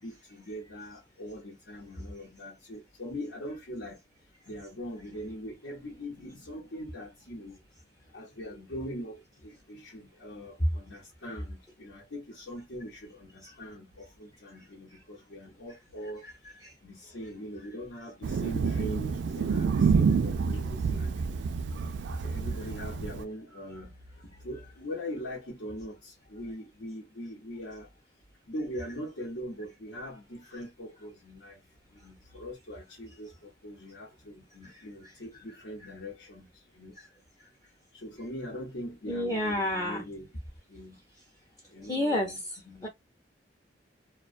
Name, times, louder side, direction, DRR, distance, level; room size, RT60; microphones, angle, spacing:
voice 1, 0.0-4.0 4.5-7.6 8.1-21.5 22.2-27.9 28.5-31.6 31.9-37.0 37.9-40.3 40.7-41.0 41.7-42.9, equal, 85° left, 0.9 m, -42 dB
Thunder, 18.2-23.2, right 5 dB, 75° right, 0.4 m, -28 dB
voice 2, 39.1-40.0 41.9-42.4 42.8-42.9, left 1 dB, 20° left, 0.6 m, -29 dB
2.3 x 2.2 x 2.4 m
head